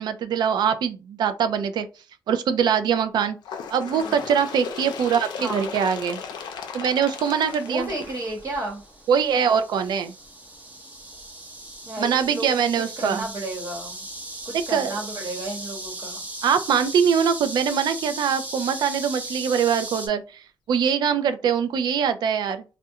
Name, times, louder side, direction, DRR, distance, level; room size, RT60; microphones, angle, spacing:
voice 1, 0.0-1.9 2.3-3.4 3.7-6.2 6.7-7.9 9.1-10.1 12.0-13.3 14.7-15.0 16.4-20.4 20.7-22.6, right 7 dB, 75° right, 0.4 m, -23 dB
Bird, 3.4-8.9 9.7-9.9 10.2-10.3 11.2-11.3 12.2-12.3 13.2-13.3, left 6 dB, 80° left, 0.4 m, -36 dB
sound 1, 7.1-20.1, right 1 dB, 20° right, 0.7 m, -38 dB
voice 2, 7.6-8.8 11.8-14.0 14.4-16.2, right 1 dB, 45° right, 1.0 m, -33 dB
2.3 x 2.1 x 2.7 m
cardioid pair, 85°, 7 cm